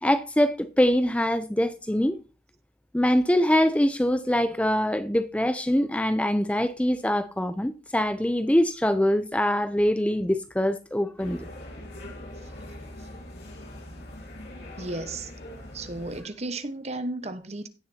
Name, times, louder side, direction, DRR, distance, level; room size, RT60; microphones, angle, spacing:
voice 1, 0.0-2.2 2.9-11.4, left 1 dB, 5° left, 0.5 m, -23 dB
sound 1, 11.2-16.2, left 1 dB, 80° left, 5.8 m, -42 dB
voice 2, 14.8-15.3 15.7-17.7, right 2 dB, 40° right, 1.1 m, -34 dB
16.5 x 6.7 x 2.8 m
head